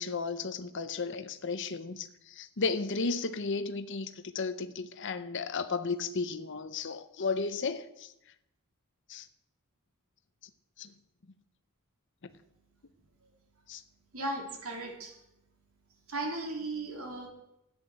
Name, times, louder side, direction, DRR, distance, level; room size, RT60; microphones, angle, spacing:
voice 1, 0.0-8.1 9.1-9.3 10.8-10.9 13.7-13.8, left 4 dB, 55° left, 0.7 m, -34 dB
voice 2, 14.1-15.1 16.1-17.3, right 2 dB, 70° right, 3.2 m, -36 dB
13.5 x 9.9 x 7.7 m
head